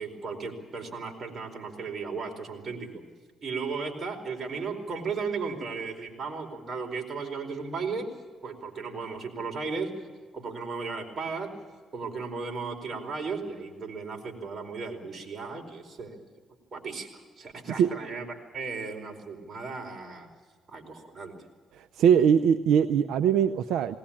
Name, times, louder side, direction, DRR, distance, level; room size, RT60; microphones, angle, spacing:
voice 1, 0.0-3.0 3.4-8.1 8.4-10.0 10.3-11.6 11.9-16.2 16.7-18.3 18.5-20.3 20.7-21.3, right 4 dB, 40° right, 2 dB, 4.5 m, -35 dB
voice 2, 22.0-24.0, right 8 dB, 85° right, 9 dB, 0.6 m, -21 dB
20.0 x 19.0 x 8.7 m, 1.5 s
cardioid pair, 90°, 0 cm